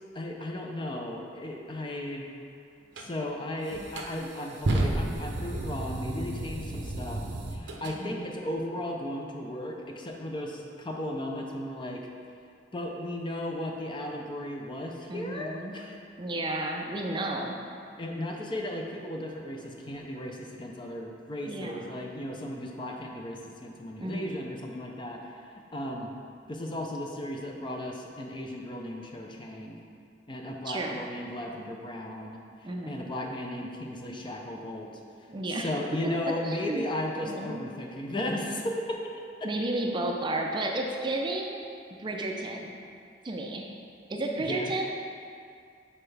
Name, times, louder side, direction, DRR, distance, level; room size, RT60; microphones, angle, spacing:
voice 1, 0.1-2.3 3.0-7.2 7.5-12.0 12.7-16.0 18.0-26.1 26.5-29.8 30.3-32.4 32.9-34.9 35.5-39.0 39.4-39.5 44.5-44.7, left 1 dB, 30° left, 1 dB, 0.5 m, -35 dB
sound 1, 2.9-3.1 3.7-8.0, right 2 dB, 90° right, 0.6 m, -32 dB
voice 2, 8.0-8.4 15.1-15.7 16.2-17.6 21.5-22.0 24.0-24.4 30.6-31.0 32.6-33.1 35.3-35.7 36.4-36.9 37.3-37.6 39.4-41.6 42.0-42.7 43.2-43.6 44.1-44.8, right 2 dB, 25° right, 1 dB, 0.4 m, -32 dB
6.7 x 4.3 x 3.3 m, 2.3 s
head